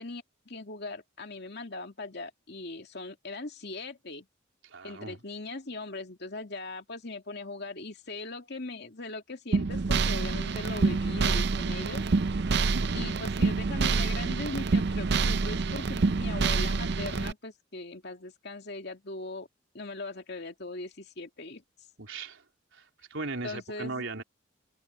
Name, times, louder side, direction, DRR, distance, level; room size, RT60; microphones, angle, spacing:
voice 1, 0.0-4.3 4.8-12.1 12.9-19.5 19.7-21.6 23.4-24.1, left 2 dB, 55° left, 2.5 m, -40 dB
voice 2, 4.6-5.2 12.7-13.1 22.0-22.4 22.7-24.2, right 3 dB, 75° right, 3.7 m, -38 dB
sound 1, 9.5-17.3, right 4 dB, 55° right, 0.6 m, -27 dB
head